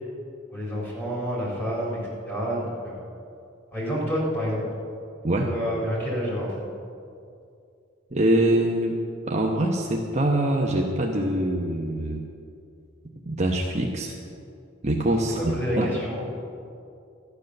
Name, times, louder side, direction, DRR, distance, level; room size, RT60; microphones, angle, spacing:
voice 1, 0.5-3.0 3.7-4.6 5.4-6.7 15.4-16.2, equal, 10° left, -5 dB, 4.2 m, -28 dB
voice 2, 8.1-9.0 9.3-12.2 13.3-14.1 14.8-15.9, right 1 dB, 35° right, 0 dB, 1.0 m, -24 dB
13.5 x 10.0 x 6.6 m, 2.5 s
head